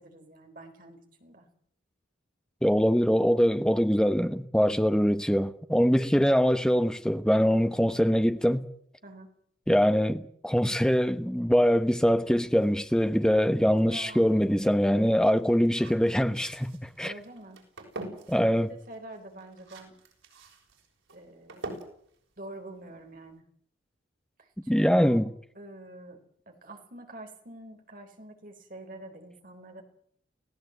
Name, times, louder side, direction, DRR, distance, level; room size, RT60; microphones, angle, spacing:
voice 1, 0.0-1.5 9.0-9.3 13.9-14.4 17.0-17.6 18.4-19.9 21.1-21.8 22.4-23.4 24.4-25.2 25.5-26.2 26.5-29.8, right 1 dB, 45° right, 4.1 m, -46 dB
voice 2, 2.6-8.6 9.7-17.1 18.3-18.7 24.7-25.3, equal, 5° left, 1.0 m, -23 dB
sound 1, 12.5-23.4, right 2 dB, 90° right, 7.0 m, -47 dB
24.5 x 17.0 x 8.0 m
head